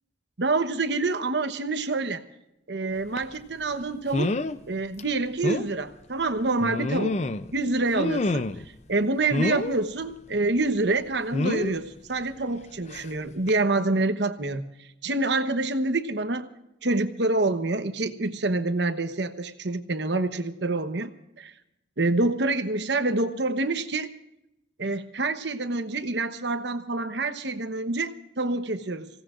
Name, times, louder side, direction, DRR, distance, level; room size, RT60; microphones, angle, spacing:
voice 1, 0.4-2.2 2.7-4.4 4.7-7.2 7.5-8.5 8.9-16.5 16.8-21.1 21.4-21.5 22.0-24.1 24.8-29.1, right 2 dB, 70° right, 9 dB, 1.1 m, -27 dB
sound 1, 3.2-3.3 4.1-4.6 5.0-5.1 5.4-5.7 6.6-7.5 7.9-8.7 9.3-9.8 11.3-11.7 12.9-13.1 13.5-13.6, left 2 dB, 35° left, 0.5 m, -27 dB
26.0 x 17.0 x 2.5 m, 0.88 s
head